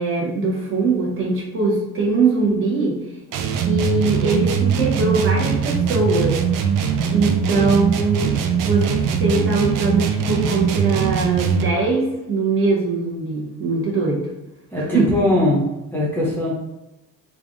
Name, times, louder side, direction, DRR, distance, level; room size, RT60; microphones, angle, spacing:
voice 1, 0.0-3.0 3.5-6.4 7.1-8.3 8.6-14.2 14.8-15.1, right 3 dB, 40° right, -3 dB, 1.0 m, -21 dB
sound 1, 3.3-11.8, right 7 dB, 70° right, 0.5 m, -21 dB
voice 2, 14.7-15.6 15.9-16.6, left 1 dB, 5° left, -7 dB, 0.6 m, -21 dB
3.3 x 2.4 x 3.8 m, 0.97 s
cardioid pair, 160°, 33 cm